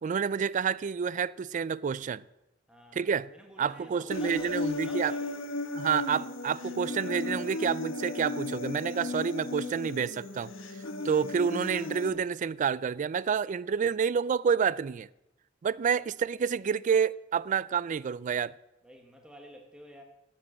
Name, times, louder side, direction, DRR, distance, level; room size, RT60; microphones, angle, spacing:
voice 1, 0.0-2.2 2.9-3.3 3.6-5.1 5.7-10.5 11.0-15.1 15.6-18.5, right 6 dB, 40° right, 0.3 m, -29 dB
voice 2, 2.7-5.4 15.8-16.6 18.8-20.0, equal, 5° right, 1.2 m, -50 dB
Human voice, 4.1-12.1, left 2 dB, 80° left, 1.3 m, -35 dB
12.5 x 7.4 x 7.5 m
head